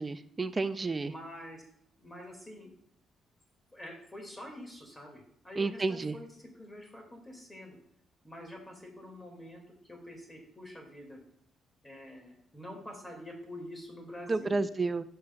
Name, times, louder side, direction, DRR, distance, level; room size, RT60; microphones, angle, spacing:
voice 1, 0.0-1.1 5.6-6.1 14.3-15.0, right 3 dB, 25° right, 12 dB, 0.5 m, -31 dB
voice 2, 1.0-1.6 2.0-2.7 3.7-7.8 8.2-11.2 11.8-14.6, left 1 dB, 15° left, 2 dB, 2.3 m, -46 dB
11.5 x 6.4 x 2.4 m, 0.70 s
cardioid pair, 90°, 0 cm